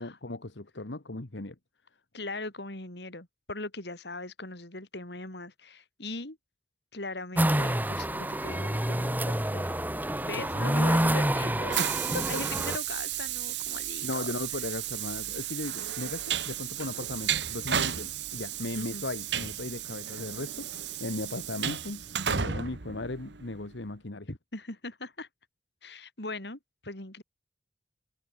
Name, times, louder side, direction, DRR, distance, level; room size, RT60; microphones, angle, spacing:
voice 1, 0.0-1.5 10.5-10.6 11.8-12.3 14.0-24.3, left 2 dB, 90° left, 1.6 m, -37 dB
voice 2, 2.1-6.4 6.9-9.8 10.2-11.8 12.3-14.3 17.7-17.8 18.8-19.0 24.3-25.3 25.8-27.2, left 2 dB, 70° left, 4.0 m, -40 dB
sound 1, 7.3-12.8, right 1 dB, 10° right, 2.3 m, -28 dB
Train, 10.7-23.7, right 9 dB, 80° right, 1.3 m, -34 dB
head